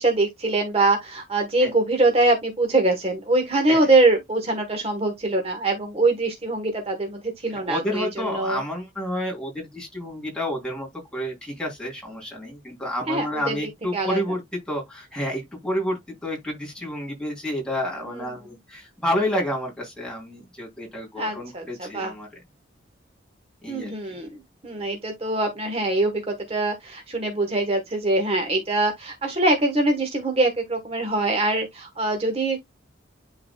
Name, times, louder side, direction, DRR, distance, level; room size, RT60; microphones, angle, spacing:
voice 1, 0.0-8.6 13.1-13.5 13.9-14.2 21.2-22.1 23.7-24.3 24.6-32.6, right 2 dB, 30° right, 1.1 m, -23 dB
voice 2, 7.5-22.3 23.6-23.9, equal, 5° left, 3.0 m, -30 dB
11.0 x 3.9 x 2.2 m
head